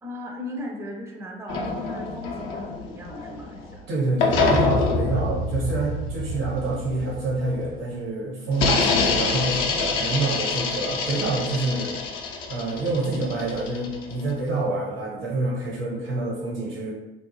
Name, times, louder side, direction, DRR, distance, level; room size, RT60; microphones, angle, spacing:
voice 1, 0.0-3.8, left 1 dB, 10° right, 1 dB, 0.5 m, -37 dB
sound 1, 1.5-3.8 4.2-7.8 8.5-14.3, left 3 dB, 70° left, 0.5 m, -26 dB
voice 2, 3.9-11.9 12.5-16.9, right 2 dB, 75° right, -4 dB, 1.1 m, -27 dB
2.5 x 2.0 x 3.0 m, 1.0 s
figure-of-eight pair, 50°, 29 cm